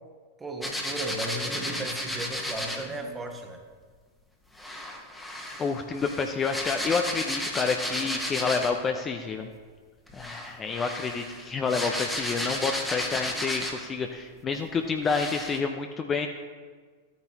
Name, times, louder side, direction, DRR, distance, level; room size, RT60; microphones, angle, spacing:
voice 1, 0.4-3.6, right 1 dB, 15° right, 4 dB, 1.4 m, -35 dB
sound 1, 0.6-2.9 4.6-8.9 10.1-14.0 14.5-14.6 15.0-15.6, left 1 dB, 5° left, 1.4 m, -33 dB
voice 2, 5.6-9.5 10.1-16.3, left 5 dB, 25° left, 5 dB, 0.7 m, -29 dB
13.0 x 9.4 x 3.0 m, 1.5 s
figure-of-eight pair, 90°, 0 cm